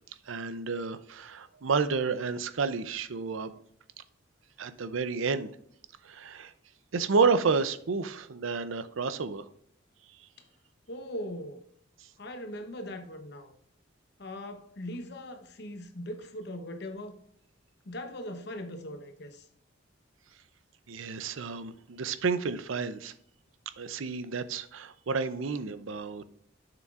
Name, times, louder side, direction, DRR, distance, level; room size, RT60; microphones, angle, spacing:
voice 1, 0.3-3.5 4.6-5.5 6.0-6.5 6.9-9.4 20.9-23.1 23.8-26.2, right 5 dB, 80° right, 0.6 m, -30 dB
voice 2, 10.9-11.7 12.2-13.5 14.2-17.2 17.9-19.5, left 1 dB, 55° left, 0.9 m, -40 dB
7.0 x 6.7 x 2.4 m
head